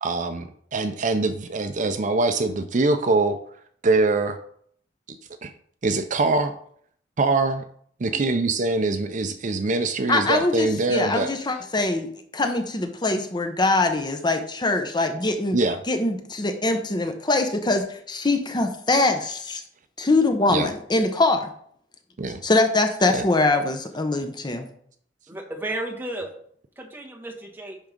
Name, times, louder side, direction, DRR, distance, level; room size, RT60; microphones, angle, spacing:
voice 1, 0.0-3.4 3.8-4.4 5.4-5.5 5.8-6.5 7.2-7.6 8.0-11.3 15.5-15.8 20.5-20.7 22.2-22.4 23.1-23.2, right 3 dB, 45° right, 8 dB, 0.5 m, -23 dB
voice 2, 10.1-15.6 15.9-19.6 20.0-21.5 22.4-24.7, left 2 dB, 25° left, 6 dB, 0.8 m, -23 dB
voice 3, 25.3-26.3 26.8-27.8, right 1 dB, 10° right, 0 dB, 1.4 m, -33 dB
10.5 x 3.6 x 5.2 m, 0.62 s
head